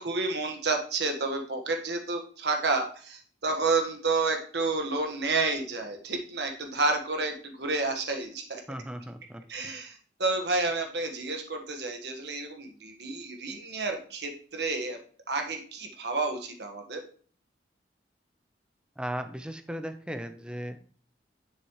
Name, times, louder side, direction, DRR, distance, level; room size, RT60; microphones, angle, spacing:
voice 1, 0.0-8.6 9.5-15.0 15.3-17.0, right 3 dB, 65° right, 4 dB, 1.4 m, -30 dB
voice 2, 8.7-9.4 19.0-20.8, equal, 5° right, 8 dB, 0.6 m, -36 dB
7.2 x 6.8 x 3.1 m, 0.43 s
head